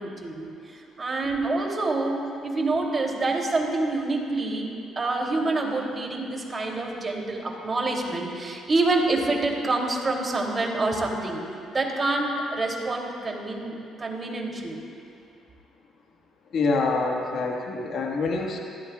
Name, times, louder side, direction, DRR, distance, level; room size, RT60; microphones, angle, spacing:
voice 1, 0.0-11.4 11.7-14.8, right 2 dB, 35° right, 0 dB, 3.1 m, -27 dB
voice 2, 16.5-18.6, left 3 dB, 60° left, 1 dB, 1.7 m, -26 dB
24.0 x 15.5 x 2.4 m, 2.5 s
hypercardioid pair, 55°, 0 cm